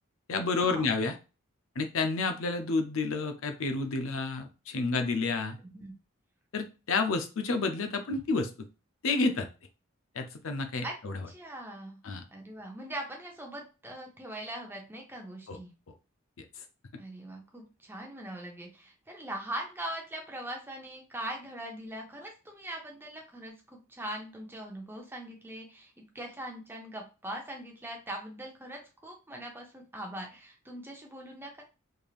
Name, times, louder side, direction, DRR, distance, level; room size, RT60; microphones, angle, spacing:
voice 1, 0.3-1.2 1.8-5.6 6.5-8.5 9.0-9.5 10.2-11.2 12.0-12.2 15.5-15.6 16.4-16.5, left 3 dB, 70° left, 7 dB, 0.5 m, -30 dB
voice 2, 5.6-5.9 10.8-10.9 11.3-12.0 12.3-15.7 17.0-31.6, right 1 dB, 10° right, 1 dB, 0.8 m, -41 dB
3.5 x 3.3 x 2.4 m, 0.31 s
head